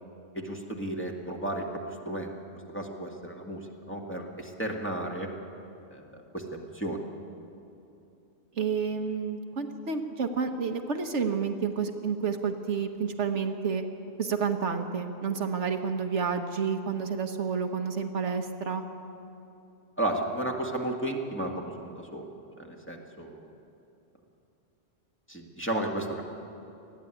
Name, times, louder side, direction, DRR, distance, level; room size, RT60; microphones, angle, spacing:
voice 1, 0.3-2.3 2.7-5.3 5.9-7.0 20.0-22.3 22.6-23.5 25.3-26.2, right 1 dB, 10° left, 0 dB, 1.8 m, -33 dB
voice 2, 8.6-13.8 14.2-18.9, right 6 dB, 70° right, 5 dB, 1.4 m, -30 dB
20.0 x 13.5 x 9.9 m, 2.8 s
omnidirectional pair, 1.2 m